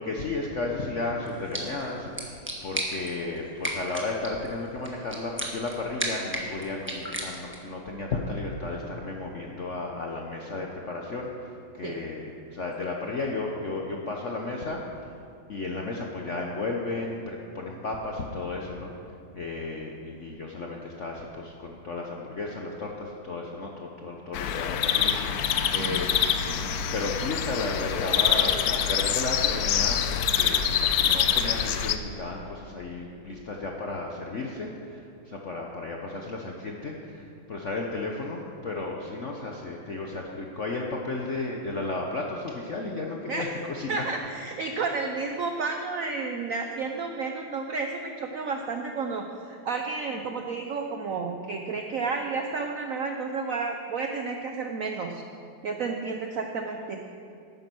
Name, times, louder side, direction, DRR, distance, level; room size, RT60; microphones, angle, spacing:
voice 1, 0.0-11.5 11.7-15.1 15.5-18.9 19.3-26.3 26.9-44.0, left 3 dB, 55° left, 0 dB, 0.8 m, -34 dB
sound 1, 1.2-7.7, right 1 dB, 5° right, 1.0 m, -36 dB
sound 2, 24.3-32.0, left 8 dB, 85° left, 0.8 m, -25 dB
voice 2, 26.5-26.8 43.3-43.5 43.9-55.2 55.6-57.0, right 4 dB, 80° right, 4 dB, 0.7 m, -31 dB
11.0 x 9.5 x 6.1 m, 2.5 s
omnidirectional pair, 2.3 m